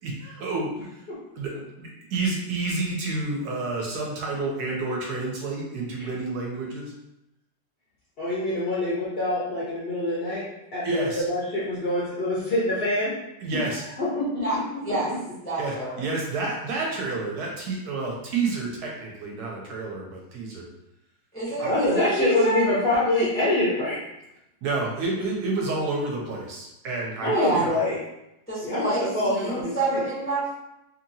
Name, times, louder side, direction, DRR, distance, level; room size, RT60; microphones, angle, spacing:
voice 1, 0.0-1.0 1.4-6.9 10.8-11.2 13.4-13.8 15.6-20.7 21.6-21.7 24.6-27.8, right 3 dB, 70° right, -2 dB, 1.0 m, -29 dB
voice 2, 8.2-10.4 10.7-13.1 14.0-14.6 15.1-15.2 21.6-24.0 27.2-27.9 28.6-30.0, left 1 dB, 65° left, -8 dB, 0.5 m, -25 dB
voice 3, 14.4-15.1 15.4-16.0 21.3-22.6 27.3-27.6 28.5-30.5, right 2 dB, 10° left, -10 dB, 0.4 m, -27 dB
2.8 x 2.7 x 2.6 m, 0.88 s
omnidirectional pair, 1.9 m